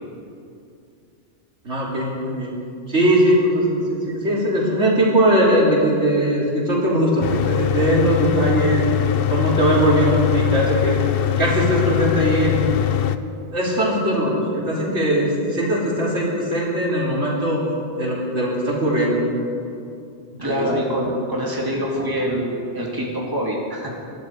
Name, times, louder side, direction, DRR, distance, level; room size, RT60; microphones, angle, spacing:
voice 1, 1.6-2.5 2.9-8.8 9.3-11.0 11.4-12.6 13.5-17.6 18.0-19.2 20.4-20.8, right 1 dB, 80° right, -4 dB, 3.7 m, -20 dB
Mechanical fan, 7.2-13.2, left 11 dB, 60° left, 0.8 m, -22 dB
voice 2, 20.4-23.9, equal, 20° right, -3 dB, 2.4 m, -25 dB
24.5 x 12.0 x 4.7 m, 2.5 s
omnidirectional pair, 1.2 m